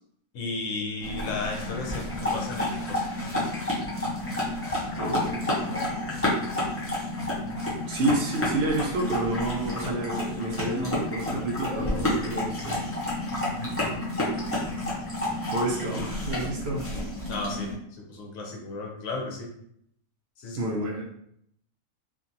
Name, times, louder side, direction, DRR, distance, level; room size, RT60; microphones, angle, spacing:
voice 1, 0.3-3.1 13.6-13.9 17.3-19.5 20.4-20.8, left 3 dB, 80° left, 1 dB, 1.1 m, -34 dB
sound 1, 1.0-17.7, left 1 dB, 15° left, 0.4 m, -30 dB
voice 2, 5.0-5.4 7.9-12.8 15.4-16.8 20.6-21.0, right 2 dB, 60° right, -2 dB, 0.7 m, -29 dB
2.7 x 2.5 x 2.5 m, 0.71 s
omnidirectional pair, 1.4 m